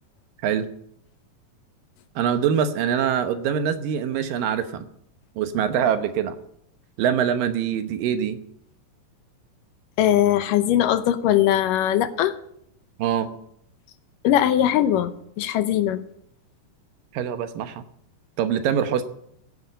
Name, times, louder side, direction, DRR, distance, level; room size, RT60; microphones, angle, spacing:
voice 1, 2.2-4.9 5.4-6.4 7.0-8.4 13.0-13.3 17.1-17.8 18.4-19.1, right 8 dB, 75° right, 10 dB, 2.6 m, -24 dB
voice 2, 10.0-12.4 14.2-16.0, left 11 dB, 75° left, 12 dB, 2.3 m, -20 dB
15.0 x 9.5 x 8.5 m, 0.72 s
omnidirectional pair, 4.2 m